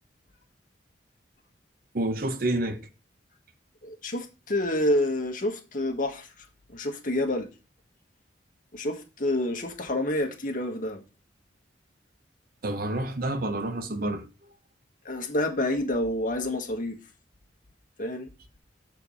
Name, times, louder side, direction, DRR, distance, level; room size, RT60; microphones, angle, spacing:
voice 1, 1.9-2.8 12.6-14.3, right 1 dB, 50° right, 0.8 m, -28 dB
voice 2, 3.8-7.5 8.7-11.0 15.0-17.0 18.0-18.3, left 1 dB, 45° left, 1.5 m, -28 dB
6.8 x 4.5 x 5.4 m
head